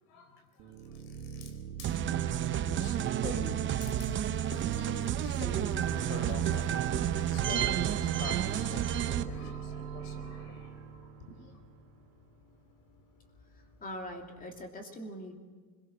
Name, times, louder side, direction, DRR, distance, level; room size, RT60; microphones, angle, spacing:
voice 1, 0.0-2.1 2.5-11.6, left 4 dB, 65° left, 8 dB, 4.5 m, -47 dB
sound 1, 0.6-12.2, right 7 dB, 75° right, 4.4 m, -41 dB
sound 2, 1.8-9.2, right 10 dB, 25° right, 0.7 m, -31 dB
Run, 4.1-14.7, left 3 dB, 40° left, 3.8 m, -57 dB
voice 2, 13.8-15.4, equal, 15° left, 4 dB, 2.8 m, -42 dB
25.0 x 22.0 x 6.3 m, 1.5 s
supercardioid pair, 130°, 48 cm